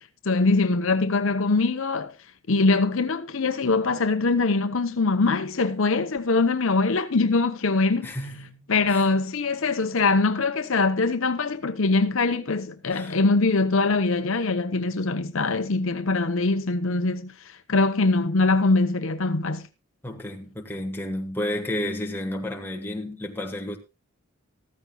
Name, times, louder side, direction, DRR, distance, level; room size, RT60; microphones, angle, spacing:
voice 1, 0.2-2.1 2.5-8.1 8.7-17.3 17.7-19.7, left 3 dB, 65° left, 0.8 m, -23 dB
voice 2, 8.0-8.6 8.9-9.1 12.9-13.2 20.0-23.8, left 1 dB, 10° left, 1.5 m, -31 dB
14.5 x 14.0 x 2.3 m
head